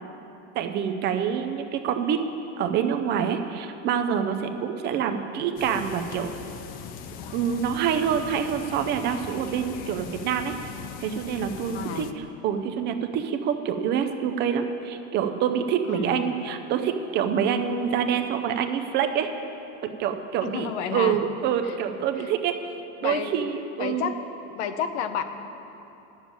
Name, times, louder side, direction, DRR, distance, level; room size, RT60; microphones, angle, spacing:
voice 1, 0.5-2.2 2.6-6.3 7.3-10.5 11.0-19.3 20.0-22.6 23.0-24.1, right 8 dB, 30° right, 6 dB, 0.5 m, -26 dB
sound 1, 5.6-12.1, left 7 dB, 25° left, 0.3 m, -40 dB
voice 2, 11.7-12.1 15.9-16.3 20.4-21.2 21.7-22.1 23.0-23.3 23.8-24.2 24.5-25.2, left 8 dB, 75° left, 9 dB, 0.9 m, -31 dB
10.0 x 7.2 x 8.8 m, 2.9 s
supercardioid pair, 150°, 34 cm